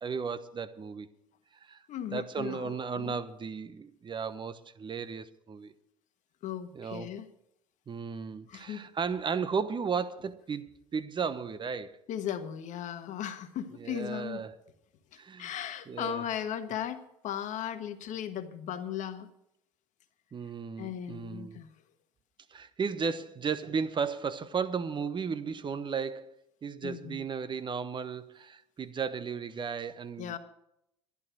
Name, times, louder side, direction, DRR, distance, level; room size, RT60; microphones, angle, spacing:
voice 1, 0.0-1.1 1.6-1.8 2.1-5.7 6.7-7.1 7.9-12.0 13.7-14.6 15.2-15.5 15.9-16.2 20.3-21.6 22.5-26.3 26.6-30.3, right 6 dB, 30° right, 1.0 m, -35 dB
voice 2, 1.9-3.2 6.4-7.3 8.5-8.9 12.1-14.5 15.1-19.3 20.8-21.7 26.8-27.2 30.2-30.4, left 9 dB, 55° left, 1.4 m, -37 dB
11.5 x 11.0 x 6.2 m
hypercardioid pair, 75°, 15 cm